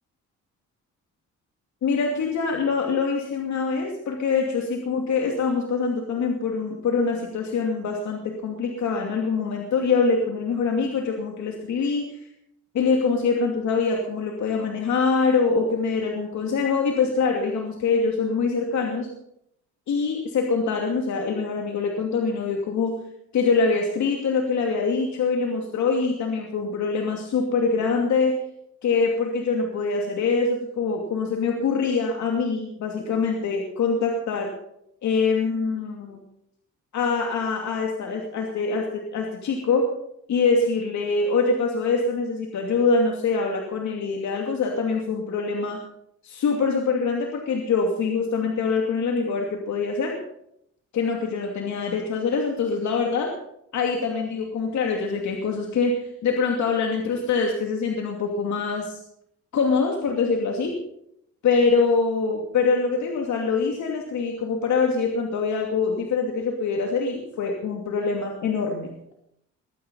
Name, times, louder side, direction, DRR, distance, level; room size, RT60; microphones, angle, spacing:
voice 1, 1.8-12.2 12.7-19.1 19.9-22.9 23.3-28.4 28.8-34.5 35.0-36.2 36.9-39.9 40.3-45.8 46.2-50.2 50.9-53.3 53.7-59.0 59.5-60.7 61.4-68.9, left 4 dB, 65° left, 1 dB, 2.7 m, -24 dB
22.5 x 9.3 x 5.5 m, 0.76 s
cardioid pair, 90°, 30 cm